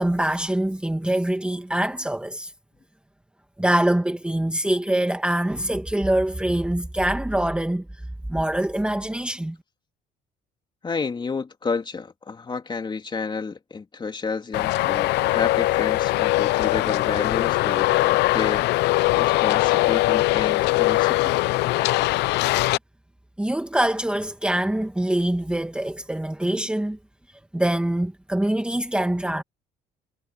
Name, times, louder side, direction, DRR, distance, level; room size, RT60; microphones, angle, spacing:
voice 1, 0.0-2.5 3.6-7.9 8.3-9.6 23.4-27.0 27.5-29.4, right 1 dB, 5° right, 1.8 m, -24 dB
voice 2, 10.8-18.7 19.2-21.4, left 4 dB, 25° left, 3.3 m, -31 dB
Traffic noise roadway noise, 14.5-22.8, left 19 dB, 85° left, 0.7 m, -21 dB
cardioid pair, 110°, 17 cm